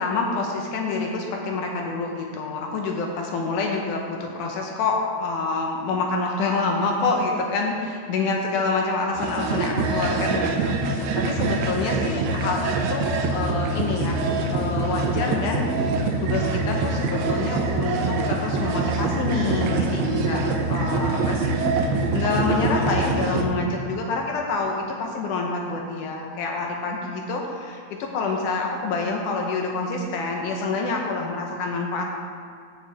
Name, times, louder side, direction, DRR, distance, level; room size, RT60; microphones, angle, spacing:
voice 1, 0.0-15.9 16.2-21.7 22.1-32.0, left 3 dB, 75° left, 1 dB, 1.9 m, -27 dB
sound 1, 9.2-23.4, right 3 dB, 85° right, 2.8 m, -24 dB
15.5 x 6.6 x 3.4 m, 2.2 s
omnidirectional pair, 4.5 m